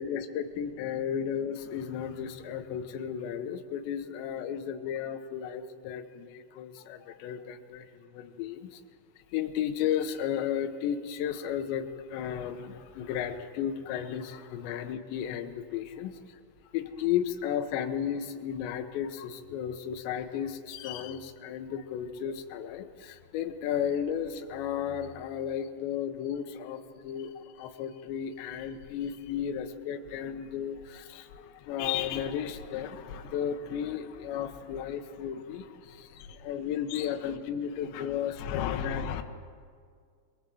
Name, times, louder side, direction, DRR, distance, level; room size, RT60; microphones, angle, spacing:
voice 1, 0.0-8.8 9.3-16.4 16.7-39.2, left 9 dB, 75° left, 6 dB, 3.1 m, -34 dB
22.0 x 20.0 x 7.7 m, 2.1 s
omnidirectional pair, 5.4 m